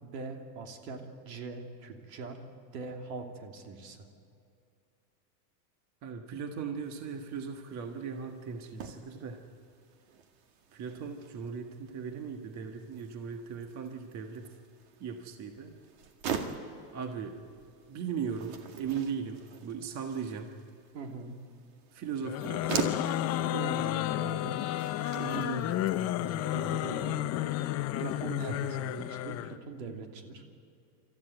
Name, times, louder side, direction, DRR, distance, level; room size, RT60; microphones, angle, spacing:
voice 1, 0.0-2.4 2.7-4.1 20.9-21.4 23.5-24.6 26.5-27.2 27.6-30.4, right 4 dB, 75° right, 4 dB, 3.0 m, -41 dB
voice 2, 6.0-9.4 10.7-14.5 15.0-15.7 16.9-17.4 17.9-20.6 21.9-22.8 25.1-27.6 28.4-28.7, right 6 dB, 35° right, 5 dB, 1.4 m, -38 dB
sound 1, 6.8-25.9, right 7 dB, 55° right, 2.2 m, -43 dB
sound 2, 22.2-29.6, left 14 dB, 30° left, 0.6 m, -32 dB
28.0 x 13.5 x 9.2 m, 2.5 s
supercardioid pair, 145°, 50 cm